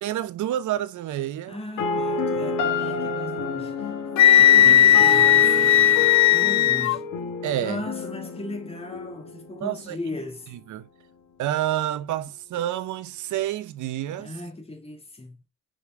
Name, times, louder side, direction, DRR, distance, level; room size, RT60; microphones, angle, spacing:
voice 1, 0.0-1.6 4.6-4.7 7.4-7.8 9.6-10.0 10.5-10.9 11.4-14.3, right 12 dB, 75° right, 0.8 m, -29 dB
voice 2, 1.5-4.1 4.4-7.0 7.6-10.5 14.2-15.4, left 2 dB, 20° left, 2.5 m, -37 dB
sound 1, 1.8-9.8, left 3 dB, 85° left, 1.5 m, -29 dB
Wind instrument woodwind instrument, 4.2-7.0, left 12 dB, 65° left, 0.5 m, -16 dB
5.1 x 5.0 x 3.7 m
cardioid pair, 115°, 31 cm